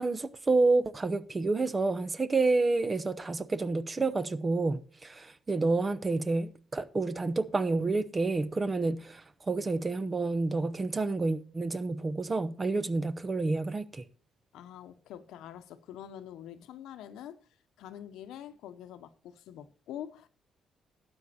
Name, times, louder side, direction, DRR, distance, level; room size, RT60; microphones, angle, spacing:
voice 1, 0.0-14.0, right 3 dB, 25° right, 0.8 m, -29 dB
voice 2, 14.5-17.4 17.8-20.3, left 10 dB, 85° left, 0.9 m, -45 dB
12.0 x 8.0 x 4.2 m
cardioid pair, 90°, 0 cm